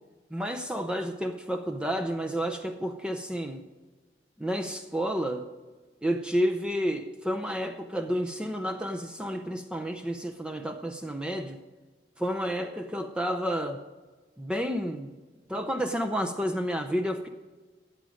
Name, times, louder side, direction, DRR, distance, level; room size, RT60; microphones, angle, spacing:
voice 1, 0.3-3.6 4.4-5.5 6.0-11.6 12.2-13.8 14.4-15.1 15.5-17.3, equal, 5° right, 6 dB, 0.6 m, -30 dB
14.0 x 9.0 x 5.0 m, 1.3 s
head